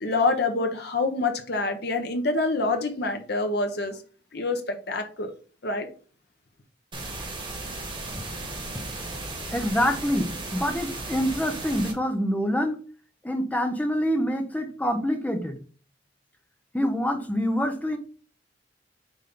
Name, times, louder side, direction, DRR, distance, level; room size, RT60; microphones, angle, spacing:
voice 1, 0.0-4.0 4.3-5.3 5.6-5.9, left 3 dB, 60° left, 1.2 m, -26 dB
sound 1, 6.9-11.9, right 2 dB, 25° right, 2.2 m, -35 dB
voice 2, 9.5-12.8 13.2-15.6 16.7-18.0, equal, 10° left, 1.0 m, -26 dB
7.5 x 4.2 x 3.8 m
head